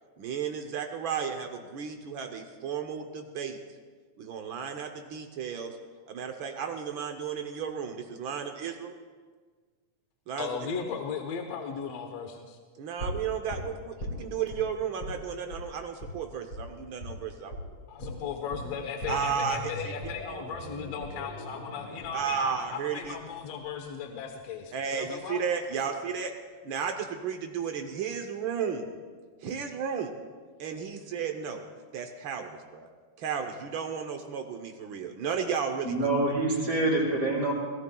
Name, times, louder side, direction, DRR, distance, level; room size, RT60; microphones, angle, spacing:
voice 1, 0.2-3.6 4.2-5.8 6.1-8.9 10.3-10.5 12.8-17.5 19.1-19.9 22.1-23.2 24.7-26.3 26.6-28.9 29.4-30.1 30.6-31.6 31.9-32.9 33.2-35.9, right 7 dB, 90° right, 4 dB, 1.0 m, -33 dB
voice 2, 10.4-12.6 17.9-25.4, left 6 dB, 65° left, 4 dB, 2.0 m, -36 dB
sound 1, 13.0-14.6 15.0-15.2 15.5-15.6 16.0-16.1 16.5-16.6 17.0-17.2 17.5-17.6 18.0-24.0 24.3-24.4, left 1 dB, 45° left, 5.3 m, -40 dB
voice 3, 35.8-37.5, right 2 dB, 60° right, -5 dB, 3.5 m, -26 dB
26.5 x 17.5 x 2.3 m, 1.5 s
omnidirectional pair, 3.3 m